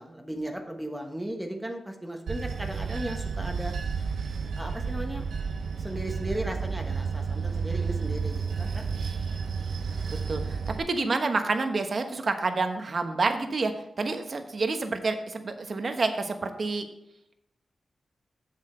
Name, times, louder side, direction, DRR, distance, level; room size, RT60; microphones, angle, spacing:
voice 1, 0.0-3.7 4.6-5.2 5.8-8.8, right 1 dB, 10° right, 3 dB, 1.2 m, -36 dB
Bell / Train, 2.3-10.8, right 5 dB, 85° right, 0.8 m, -31 dB
voice 2, 10.1-16.9, right 3 dB, 55° right, 6 dB, 1.0 m, -28 dB
7.6 x 7.3 x 4.4 m, 0.83 s
cardioid pair, 70°, 0 cm